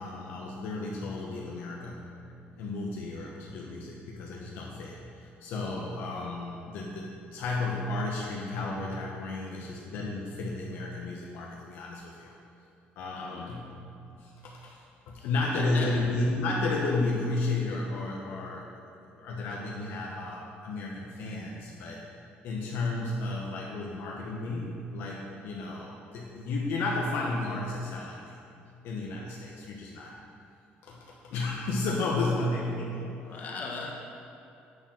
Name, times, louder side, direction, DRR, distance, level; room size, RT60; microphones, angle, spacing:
voice 1, 0.0-2.1 2.6-12.3 13.0-13.8 14.1-18.7 19.1-22.0 22.4-28.3 28.8-30.1 30.8-33.2, left 2 dB, 75° left, -3 dB, 1.1 m, -33 dB
voice 2, 13.1-13.6 15.2-15.9 25.4-25.7 32.2-32.3 33.2-33.9, left 4 dB, 50° left, -1 dB, 1.5 m, -40 dB
9.7 x 4.4 x 6.4 m, 2.6 s
cardioid pair, 115°, 4 cm